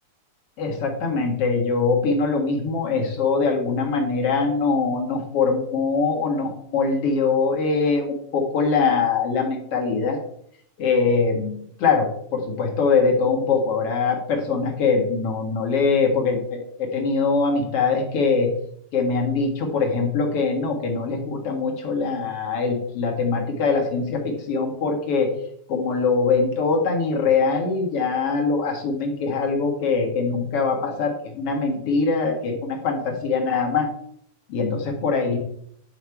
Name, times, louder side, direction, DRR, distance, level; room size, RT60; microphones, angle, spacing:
voice 1, 0.6-10.2 10.8-18.5 18.9-25.3 25.7-33.9 34.5-35.4, left 4 dB, 50° left, 1 dB, 1.9 m, -22 dB
10.5 x 5.8 x 4.7 m, 0.69 s
omnidirectional pair, 4.3 m